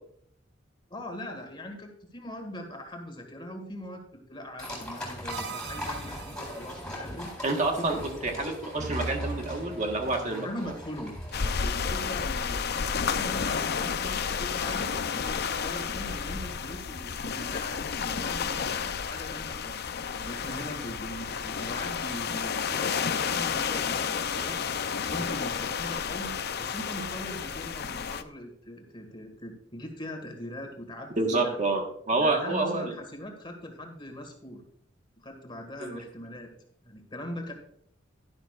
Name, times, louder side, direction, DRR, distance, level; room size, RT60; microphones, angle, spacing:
voice 1, 0.9-7.3 7.8-8.1 10.2-11.1 11.4-19.8 20.1-24.6 25.1-31.5 32.2-34.6 35.2-36.5 36.8-37.5, equal, 25° left, 4 dB, 1.8 m, -41 dB
sound 1, 4.6-11.5, left 1 dB, 5° left, 3.8 m, -40 dB
sound 2, 5.3-6.9 8.7-10.3, right 3 dB, 60° right, 0.7 m, -39 dB
voice 2, 7.4-8.0 8.2-10.5 31.2-32.9 35.8-36.0, right 2 dB, 40° right, 3 dB, 1.4 m, -28 dB
sound 3, 11.3-28.2, left 6 dB, 55° left, 0.5 m, -31 dB
11.5 x 11.0 x 2.4 m, 0.65 s
head